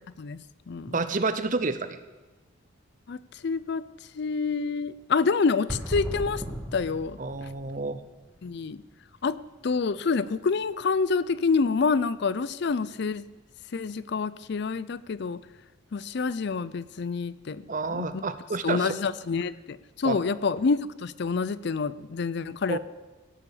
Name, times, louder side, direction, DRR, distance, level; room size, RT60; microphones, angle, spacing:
voice 1, 0.9-2.0 7.2-8.0 17.7-19.0 20.0-20.2 22.7-22.8, right 3 dB, 40° right, 12 dB, 0.6 m, -29 dB
voice 2, 3.4-3.8 4.2-6.4 6.7-7.2 8.4-8.8 9.2-9.4 9.6-13.3 13.7-15.4 15.9-17.6 17.9-18.2 18.6-22.8, left 4 dB, 55° left, 17 dB, 0.4 m, -27 dB
sound 1, 5.7-8.7 9.0-9.1 9.7-9.8 14.3-14.4, equal, ahead, 1.7 m, -37 dB
16.5 x 6.8 x 7.1 m, 1.2 s
head